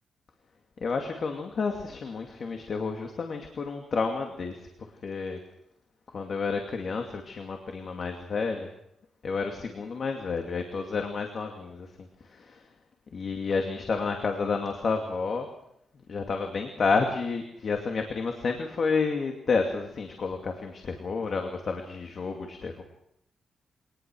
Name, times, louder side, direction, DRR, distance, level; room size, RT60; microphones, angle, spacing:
voice 1, 0.8-4.7 5.0-5.4 6.1-8.7 9.2-12.6 13.1-15.5 16.1-22.8, left 4 dB, 45° left, 3 dB, 2.5 m, -30 dB
24.5 x 19.5 x 6.3 m, 0.76 s
wide cardioid pair, 145°, 0 cm